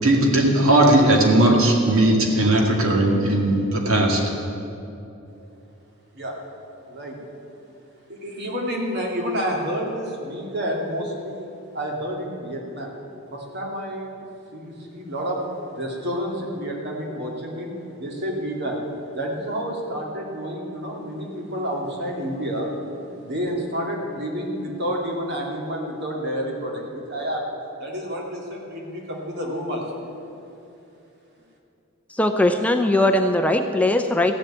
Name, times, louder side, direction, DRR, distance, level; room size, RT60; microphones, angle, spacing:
voice 1, 0.0-4.2, right 1 dB, 80° right, 0 dB, 2.2 m, -18 dB
voice 2, 6.9-7.2 8.1-11.5 11.7-12.9 13.3-14.1 14.5-15.4 15.7-18.8 19.1-22.8 23.2-27.4 27.8-30.0, equal, 55° right, -1 dB, 2.5 m, -29 dB
voice 3, 32.2-34.3, left 1 dB, 5° left, 5 dB, 0.5 m, -19 dB
15.0 x 7.2 x 8.8 m, 2.8 s
head